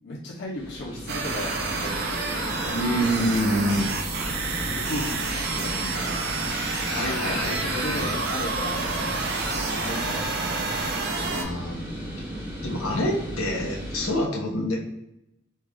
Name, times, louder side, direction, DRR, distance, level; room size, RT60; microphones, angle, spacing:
voice 1, 0.0-3.8 4.6-6.3 6.9-8.8 9.6-11.4, left 1 dB, 55° left, -4 dB, 0.7 m, -36 dB
sound 1, 0.5-14.1, equal, 25° right, 0.9 m, -35 dB
sound 2, 1.1-11.4, right 3 dB, 55° right, 0.6 m, -29 dB
voice 2, 2.7-3.9 6.9-8.0 9.5-9.7 11.3-11.8 12.6-14.8, equal, 85° left, -1 dB, 1.0 m, -27 dB
sound 3, 5.4-10.4, equal, 5° right, 0.5 m, -43 dB
3.2 x 2.4 x 3.4 m, 0.83 s
head